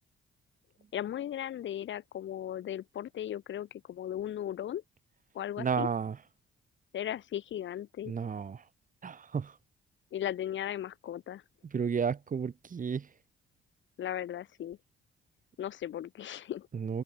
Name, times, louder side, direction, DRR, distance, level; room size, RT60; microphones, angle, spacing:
voice 1, 0.9-4.8 5.3-5.9 6.9-8.1 10.1-11.4 14.0-14.8 15.6-16.7, left 11 dB, 70° left, 7.1 m, -37 dB
voice 2, 5.6-6.2 8.1-8.6 9.0-9.5 11.7-13.1 16.7-17.0, right 6 dB, 40° right, 2.8 m, -32 dB
cardioid pair, 90°, 20 cm